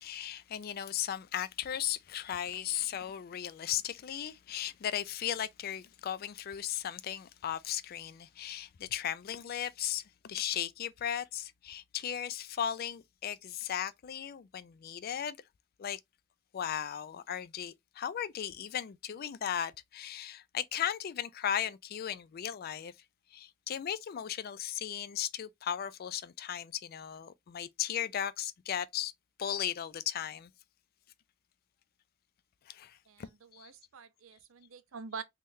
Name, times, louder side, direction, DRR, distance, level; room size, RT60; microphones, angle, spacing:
voice 1, 0.0-15.4 15.8-16.0 16.5-22.9 23.3-29.1 29.4-30.5 32.7-33.7, left 10 dB, 50° left, 0.3 m, -36 dB
voice 2, 33.1-35.2, right 5 dB, 85° right, 0.6 m, -46 dB
3.7 x 3.1 x 2.6 m
head